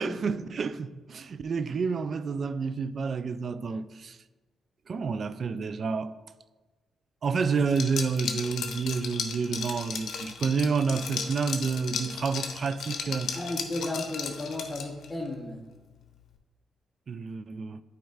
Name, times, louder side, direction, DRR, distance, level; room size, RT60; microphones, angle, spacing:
voice 1, 0.0-4.2 4.9-6.1 7.2-13.3 17.1-17.8, right 5 dB, 55° right, 0.3 m, -29 dB
Liquid, 7.7-15.1, left 6 dB, 70° left, 0.7 m, -35 dB
voice 2, 13.3-15.7, left 2 dB, 10° left, 1.0 m, -34 dB
9.0 x 4.3 x 2.4 m
supercardioid pair, 55°, 0 cm